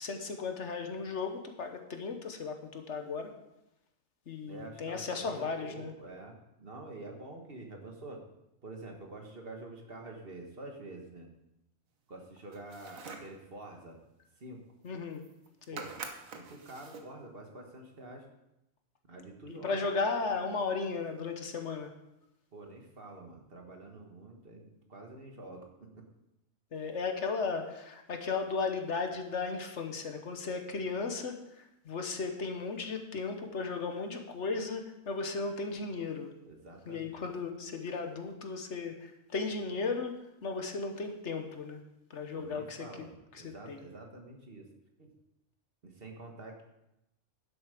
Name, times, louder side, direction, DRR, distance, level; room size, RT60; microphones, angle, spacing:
voice 1, 0.0-3.3 4.3-5.9 14.8-15.2 15.7-15.8 19.5-21.9 26.7-36.3 36.9-40.1 40.4-41.8 42.1-42.9 43.3-43.8, left 4 dB, 60° left, 5 dB, 1.3 m, -35 dB
voice 2, 4.4-8.2 8.6-11.3 12.1-14.0 14.4-14.6 15.7-15.9 16.3-18.2 19.1-19.9 22.5-26.0 36.4-37.2 42.3-44.7 45.0-45.1 45.8-46.6, right 2 dB, 45° right, 2 dB, 1.7 m, -47 dB
sound 1, 12.5-13.4 14.9-15.0 15.1-15.5 15.8-17.1, right 5 dB, 85° right, 1.5 m, -45 dB
11.0 x 7.9 x 5.0 m, 0.88 s
omnidirectional pair, 1.4 m